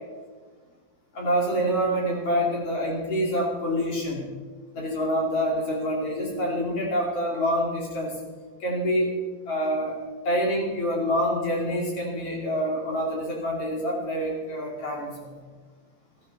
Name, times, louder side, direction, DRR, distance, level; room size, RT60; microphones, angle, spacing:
voice 1, 1.1-4.2 4.7-8.1 8.6-9.1 9.5-9.9 10.2-15.3, equal, 40° left, -2 dB, 3.2 m, -26 dB
15.0 x 14.5 x 4.2 m, 1.4 s
omnidirectional pair, 5.3 m